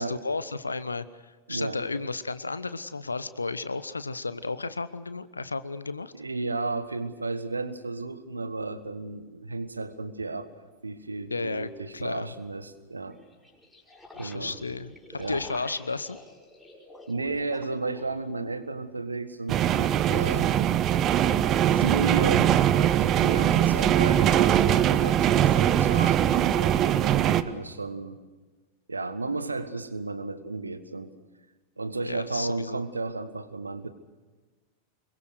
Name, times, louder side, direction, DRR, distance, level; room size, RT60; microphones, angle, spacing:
voice 1, 0.0-6.1 11.3-12.3 14.2-16.2 32.0-32.8, left 3 dB, 80° left, 15 dB, 0.9 m, -33 dB
voice 2, 1.5-1.8 6.1-10.5 10.8-13.2 14.2-14.6 15.1-15.5 17.1-20.6 21.7-26.8 27.3-28.2 28.9-31.1 31.8-33.9, right 3 dB, 80° right, 12 dB, 1.5 m, -33 dB
sound 1, 10.2-10.3 13.1-18.6, left 1 dB, 5° left, 5.6 m, -48 dB
sound 2, 19.5-27.4, right 11 dB, 35° right, 0.9 m, -22 dB
25.0 x 23.0 x 6.5 m, 1.3 s
figure-of-eight pair, 90°, 0 cm